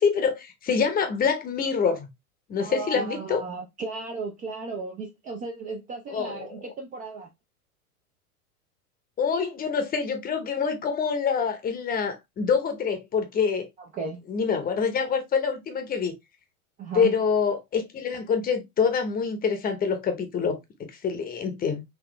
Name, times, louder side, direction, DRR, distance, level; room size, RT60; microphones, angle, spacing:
voice 1, 0.0-2.1 2.5-3.4 6.1-6.4 9.2-13.7 14.3-16.1 16.9-21.8, left 6 dB, 20° left, 0.8 m, -26 dB
voice 2, 2.6-7.3 13.8-14.2 16.8-17.2, right 4 dB, 20° right, 0.4 m, -35 dB
4.1 x 2.8 x 3.1 m
hypercardioid pair, 100°, 45 cm